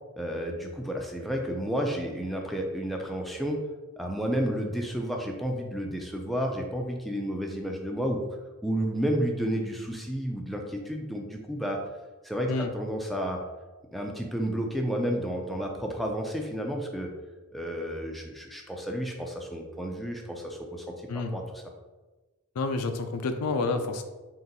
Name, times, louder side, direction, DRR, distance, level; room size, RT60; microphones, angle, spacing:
voice 1, 0.2-3.6 4.0-8.2 8.6-11.8 12.2-13.4 13.9-17.1 17.5-21.6, equal, ahead, 1 dB, 0.4 m, -31 dB
voice 2, 22.6-24.0, left 3 dB, 80° left, 7 dB, 0.4 m, -29 dB
3.8 x 2.6 x 4.0 m, 1.2 s
head